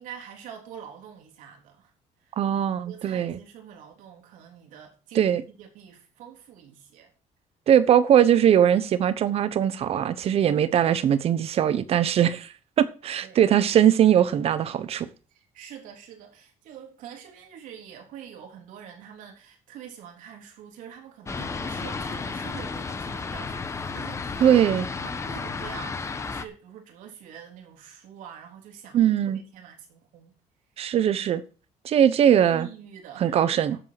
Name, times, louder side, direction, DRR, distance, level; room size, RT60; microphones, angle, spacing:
voice 1, 0.0-1.9 2.2-2.4 2.9-7.1 13.2-13.4 15.3-30.3 32.2-33.8, right 8 dB, 90° right, 3.7 m, -45 dB
voice 2, 2.4-3.4 5.1-5.4 7.7-12.5 12.8-15.1 24.4-24.8 28.9-29.4 30.8-31.4 31.8-32.7 33.2-33.8, right 9 dB, 50° right, 1.1 m, -20 dB
Fixed-wing aircraft airplane, 21.3-26.4, left 4 dB, 20° left, 1.0 m, -33 dB
11.5 x 7.6 x 6.0 m
cardioid pair, 155°, 13 cm